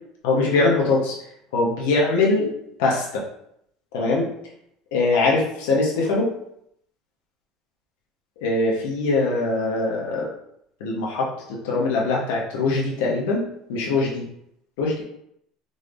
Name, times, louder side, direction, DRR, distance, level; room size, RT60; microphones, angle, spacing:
voice 1, 0.2-1.2 1.5-2.5 2.8-3.2 3.9-4.3 4.9-6.3 8.4-10.3 10.8-13.4 13.7-14.2 14.8-15.0, left 3 dB, 85° left, -3 dB, 0.9 m, -22 dB
3.9 x 3.4 x 2.5 m, 0.74 s
supercardioid pair, 120°, 0 cm